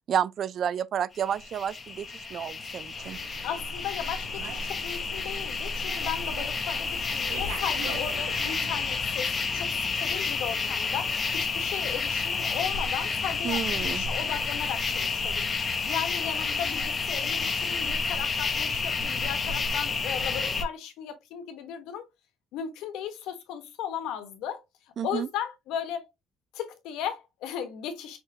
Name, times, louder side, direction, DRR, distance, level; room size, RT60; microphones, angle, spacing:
voice 1, 0.1-3.2 13.4-14.0 25.0-25.3, right 9 dB, 50° right, 0.3 m, -30 dB
sound 1, 1.1-20.6, left 4 dB, 30° left, 0.8 m, -30 dB
Slam, 3.0-9.0, right 4 dB, 90° right, 1.2 m, -41 dB
voice 2, 3.4-15.5 15.9-22.1 22.5-24.6 25.0-26.1 26.5-28.2, left 9 dB, 85° left, 1.2 m, -36 dB
5.8 x 3.1 x 2.8 m
cardioid pair, 130°, 0 cm